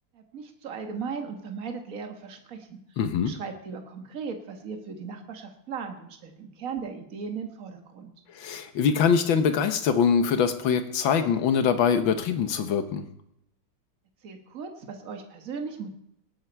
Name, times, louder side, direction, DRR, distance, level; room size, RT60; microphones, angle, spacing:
voice 1, 0.1-2.8 3.2-8.1 14.2-15.9, right 5 dB, 45° right, 5 dB, 1.8 m, -37 dB
voice 2, 3.0-3.3 8.4-13.0, left 6 dB, 90° left, 9 dB, 1.8 m, -23 dB
18.5 x 9.4 x 4.6 m, 0.78 s
omnidirectional pair, 2.1 m